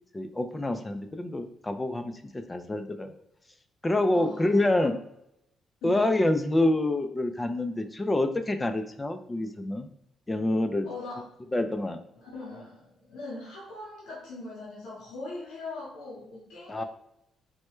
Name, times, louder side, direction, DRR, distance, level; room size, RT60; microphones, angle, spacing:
voice 1, 0.1-3.1 3.8-5.0 5.8-9.9 10.3-10.9 11.5-12.0 16.7-16.8, left 1 dB, 20° left, 7 dB, 0.4 m, -27 dB
voice 2, 4.1-4.6 5.8-6.1 10.8-11.2 12.2-16.8, left 2 dB, 85° left, -5 dB, 0.8 m, -40 dB
3.2 x 2.2 x 3.0 m, 0.79 s
cardioid pair, 90°, 0 cm